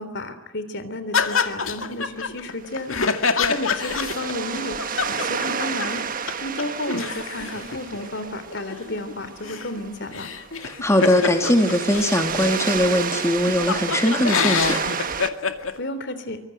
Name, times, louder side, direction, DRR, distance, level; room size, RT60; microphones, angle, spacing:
voice 1, 0.0-6.0 6.4-10.3 15.8-16.4, left 1 dB, 55° left, 11 dB, 3.3 m, -32 dB
sound 1, 1.1-6.0 6.3-6.4 6.6-12.2 12.8-12.9 13.1-15.7, left 5 dB, 75° left, 2.2 m, -26 dB
sound 2, 2.6-15.3, right 6 dB, 40° right, 1.5 m, -31 dB
voice 2, 10.6-14.8, left 1 dB, 15° left, 4 dB, 2.5 m, -20 dB
26.5 x 24.5 x 9.1 m, 0.95 s
head